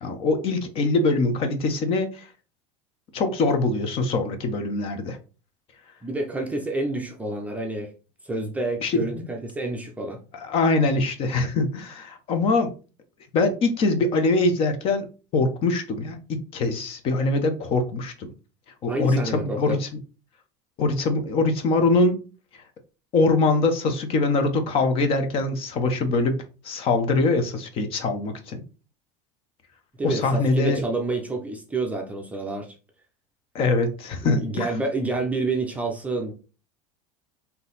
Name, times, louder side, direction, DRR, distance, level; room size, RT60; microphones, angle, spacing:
voice 1, 0.0-2.3 3.1-5.2 8.8-9.3 10.3-12.7 13.3-15.1 15.3-18.3 18.8-19.9 20.8-22.2 23.1-28.6 30.0-30.8 33.5-34.7, left 3 dB, 40° left, 8 dB, 0.8 m, -23 dB
voice 2, 6.0-7.9 8.2-10.2 18.9-19.8 30.0-32.7 34.2-36.3, right 2 dB, 10° right, 2 dB, 0.6 m, -28 dB
3.9 x 2.8 x 3.9 m, 0.34 s
supercardioid pair, 145°, 15 cm